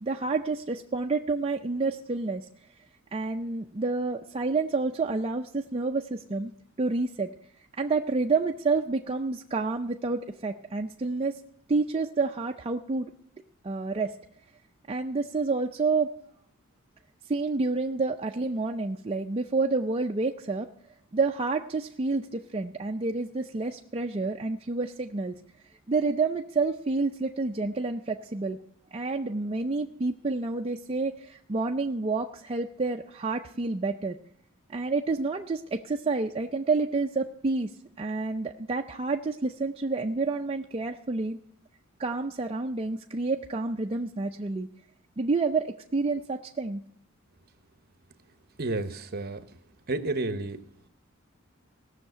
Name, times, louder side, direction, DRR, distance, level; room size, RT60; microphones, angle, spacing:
voice 1, 0.0-2.5 3.1-6.5 6.8-7.3 7.8-11.3 11.7-13.1 13.6-14.1 14.9-16.1 17.3-20.7 21.1-25.4 25.9-28.6 28.9-34.2 34.7-37.7 38.0-41.4 42.0-44.7 45.2-46.8, right 3 dB, 30° right, 3 dB, 0.5 m, -29 dB
voice 2, 48.6-49.4 49.9-50.6, right 2 dB, 50° right, 11 dB, 0.9 m, -30 dB
16.5 x 6.5 x 7.9 m, 0.70 s
head